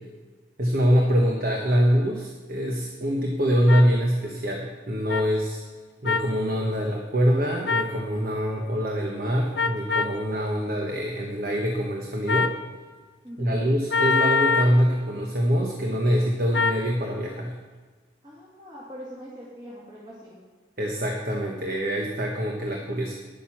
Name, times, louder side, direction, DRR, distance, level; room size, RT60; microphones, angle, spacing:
voice 1, 0.6-5.6 6.0-12.5 13.4-17.5 20.8-23.1, equal, 50° right, 0 dB, 1.2 m, -24 dB
sound 1, 3.7-3.8 5.1-5.2 6.0-6.3 7.6-7.9 9.5-10.2 12.3-12.6 13.9-14.8 16.5-16.8, left 4 dB, 55° left, 0.7 m, -24 dB
voice 2, 13.2-13.6 18.2-20.4, equal, 25° right, -7 dB, 2.3 m, -42 dB
10.5 x 9.0 x 6.0 m, 1.4 s
head